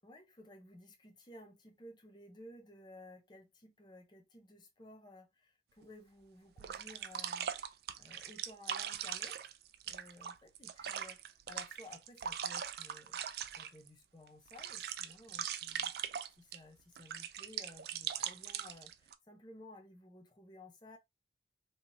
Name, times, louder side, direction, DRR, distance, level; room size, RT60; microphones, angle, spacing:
voice 1, 0.0-9.5 9.8-13.2 13.6-15.9 16.4-21.0, left 1 dB, 25° left, 0.6 m, -56 dB
sound 1, 5.8-5.9 6.6-13.9 14.3-16.6 17.0-19.1, right 9 dB, 60° right, 0.3 m, -41 dB
3.1 x 2.9 x 2.6 m
head